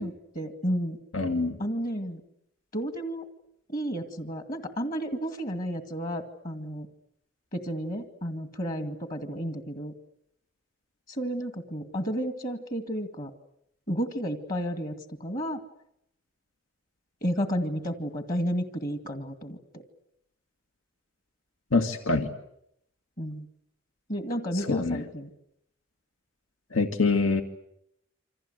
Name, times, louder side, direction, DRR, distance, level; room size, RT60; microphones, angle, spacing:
voice 1, 0.0-1.0 1.6-2.2 2.7-3.3 3.7-6.9 7.5-9.9 11.1-13.3 13.9-14.9 15.2-15.6 17.2-19.8 23.2-23.5 24.1-25.3, equal, 40° left, 7 dB, 2.1 m, -32 dB
voice 2, 1.1-1.6 21.7-22.3 24.5-25.0 26.7-27.4, left 3 dB, 85° left, 6 dB, 2.1 m, -25 dB
28.0 x 26.0 x 8.0 m, 0.77 s
head